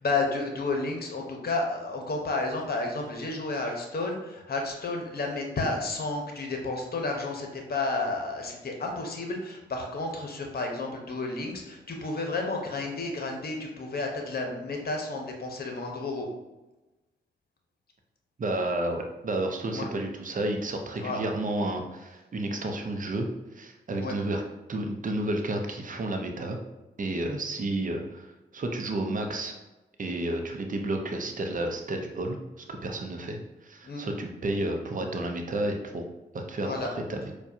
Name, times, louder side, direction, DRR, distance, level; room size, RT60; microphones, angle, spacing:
voice 1, 0.0-16.3 19.7-19.9 21.0-21.2 24.0-24.2 33.8-34.0 36.6-36.9, left 3 dB, 50° left, 2 dB, 0.9 m, -31 dB
voice 2, 18.4-23.3 23.5-24.4 24.7-26.6 27.0-29.5 30.0-36.0 36.3-37.3, right 1 dB, 40° right, 3 dB, 0.7 m, -31 dB
4.5 x 2.3 x 2.7 m, 1.0 s
supercardioid pair, 45°, 20 cm